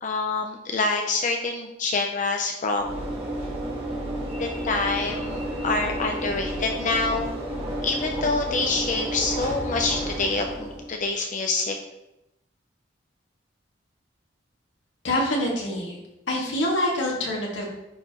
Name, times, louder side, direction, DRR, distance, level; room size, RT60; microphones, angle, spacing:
voice 1, 0.0-2.9 4.4-7.3 7.8-11.8, left 3 dB, 45° left, 3 dB, 0.6 m, -26 dB
Train / Engine / Alarm, 2.8-11.0, right 1 dB, 30° right, 1.6 m, -31 dB
voice 2, 15.0-16.0 16.3-17.7, left 1 dB, 80° left, -3 dB, 2.0 m, -25 dB
10.0 x 4.8 x 3.0 m, 0.89 s
head